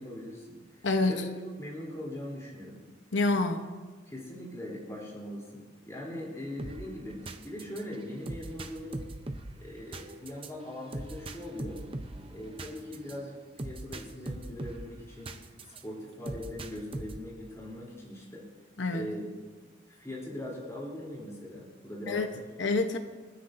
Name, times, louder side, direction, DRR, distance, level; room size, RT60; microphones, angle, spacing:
voice 1, 0.0-1.2 1.6-2.8 4.1-9.1 9.6-11.8 12.3-18.5 18.9-19.3 19.6-22.4, left 1 dB, 15° left, -5 dB, 3.4 m, -41 dB
voice 2, 0.8-1.3 3.1-3.7 18.8-19.1 22.1-22.3 22.6-23.0, left 2 dB, 70° left, 6 dB, 1.0 m, -27 dB
sound 1, 6.6-15.8 16.2-17.4, right 2 dB, 30° right, 0.7 m, -41 dB
28.5 x 9.8 x 2.7 m, 1.4 s
head